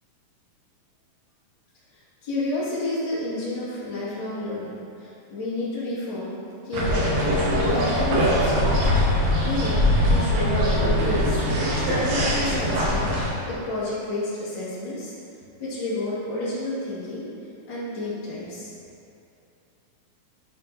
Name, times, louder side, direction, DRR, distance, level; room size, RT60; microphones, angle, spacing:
voice 1, 1.9-6.4 6.6-7.3 7.6-9.0 9.4-10.5 10.8-11.4 11.7-13.1 13.5-15.1 15.6-17.3 17.7-18.7, left 2 dB, 40° left, -14 dB, 2.0 m, -30 dB
sound 1, 6.7-13.3, equal, 85° right, 3.0 m, -22 dB
12.0 x 4.5 x 2.6 m, 2.7 s
omnidirectional pair, 4.0 m